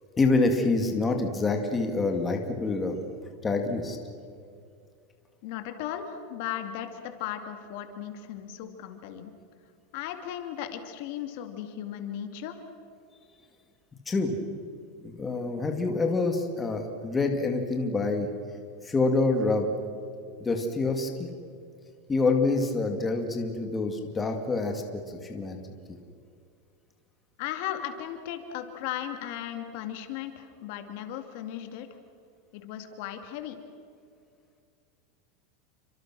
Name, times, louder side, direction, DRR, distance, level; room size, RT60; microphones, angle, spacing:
voice 1, 0.2-3.0 3.4-4.0 14.1-14.4 15.0-18.3 18.8-19.7 20.4-21.3 22.1-25.6, left 3 dB, 15° left, 4 dB, 2.3 m, -26 dB
voice 2, 5.4-9.3 9.9-12.6 27.4-31.9 32.5-33.6, left 10 dB, 60° left, 7 dB, 2.6 m, -36 dB
29.5 x 25.5 x 6.3 m, 2.4 s
supercardioid pair, 150°, 0 cm